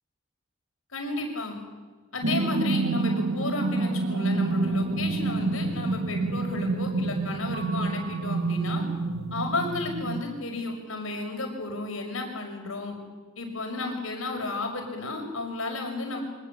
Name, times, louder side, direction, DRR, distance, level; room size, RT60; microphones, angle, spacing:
voice 1, 0.9-1.6 2.1-8.8 9.3-12.9 13.4-16.2, left 2 dB, 85° left, 3 dB, 6.0 m, -33 dB
sound 1, 2.2-10.2, right 3 dB, 80° right, 1.2 m, -28 dB
Mallet percussion, 7.5-9.3, right 6 dB, 35° right, 5.5 m, -44 dB
24.5 x 20.0 x 8.5 m, 1.3 s
head